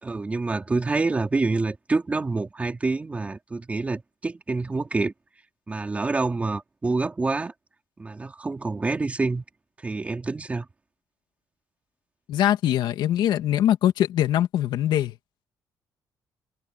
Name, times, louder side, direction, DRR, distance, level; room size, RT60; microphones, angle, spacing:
voice 1, 0.0-5.1 5.7-7.5 8.0-9.4 9.8-10.7, right 3 dB, 15° right, 3.9 m, -27 dB
voice 2, 12.3-15.1, left 11 dB, 75° left, 2.6 m, -22 dB
cardioid pair, 160°, 8 cm